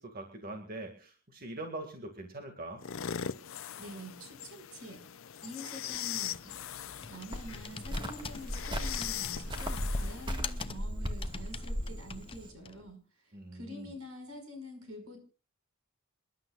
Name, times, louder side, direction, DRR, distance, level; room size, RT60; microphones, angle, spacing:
voice 1, 0.0-2.8 13.3-14.0, right 2 dB, 45° right, 4 dB, 2.0 m, -43 dB
sound 1, 2.8-10.4, left 9 dB, 65° left, 0.6 m, -41 dB
voice 2, 3.8-5.0 5.4-6.6 7.1-15.2, equal, 75° right, 4 dB, 5.6 m, -47 dB
Computer keyboard, 5.9-12.9, left 5 dB, 25° left, 0.6 m, -46 dB
Cricket, 7.3-12.5, equal, 20° right, 1.6 m, -37 dB
28.0 x 11.5 x 2.4 m, 0.35 s
head